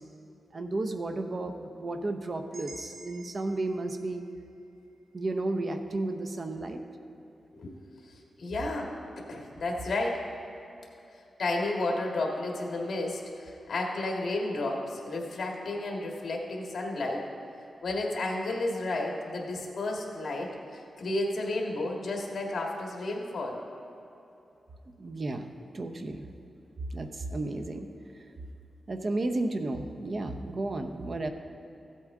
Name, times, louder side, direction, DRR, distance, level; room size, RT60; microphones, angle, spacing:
voice 1, 0.5-4.2 5.1-6.8 25.0-25.4 25.7-26.3 26.9-27.9 28.9-31.3, right 2 dB, 45° right, 7 dB, 0.7 m, -33 dB
sound 1, 2.5-6.6, right 1 dB, 60° right, 1.8 m, -52 dB
voice 2, 8.0-8.9 9.3-10.2 11.4-17.3 17.8-23.6, left 2 dB, 60° left, 0 dB, 1.7 m, -32 dB
15.0 x 8.2 x 3.7 m, 2.9 s
wide cardioid pair, 105°, 0 cm